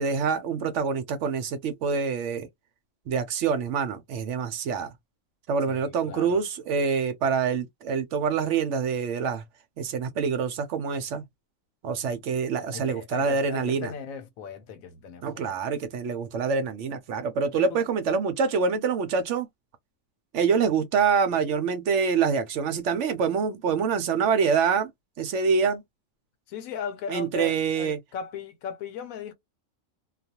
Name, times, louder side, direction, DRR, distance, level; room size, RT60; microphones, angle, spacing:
voice 1, 0.0-2.5 3.1-4.9 5.5-9.4 9.8-11.2 11.8-13.9 15.2-19.5 20.3-24.9 25.2-25.8 27.1-28.0, right 5 dB, 70° right, 0.8 m, -26 dB
voice 2, 5.6-6.4 12.7-15.6 17.6-17.8 26.5-29.3, left 6 dB, 80° left, 1.1 m, -37 dB
2.3 x 2.3 x 2.7 m
omnidirectional pair, 1.4 m